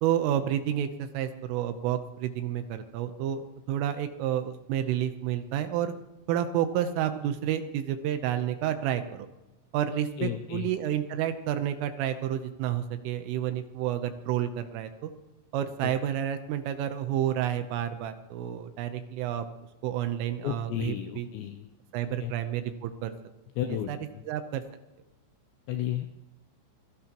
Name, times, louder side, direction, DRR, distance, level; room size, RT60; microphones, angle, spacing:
voice 1, 0.0-5.9 6.3-9.3 9.7-15.1 15.5-19.5 19.8-21.3 21.9-23.1 23.7-24.0 24.3-24.6, right 10 dB, 80° right, 8 dB, 3.4 m, -30 dB
voice 2, 10.2-10.7 15.8-15.9 20.4-21.7 22.2-22.3 23.6-24.2 25.7-26.1, left 11 dB, 80° left, 7 dB, 2.6 m, -33 dB
25.0 x 16.5 x 3.0 m, 1.0 s
omnidirectional pair, 5.9 m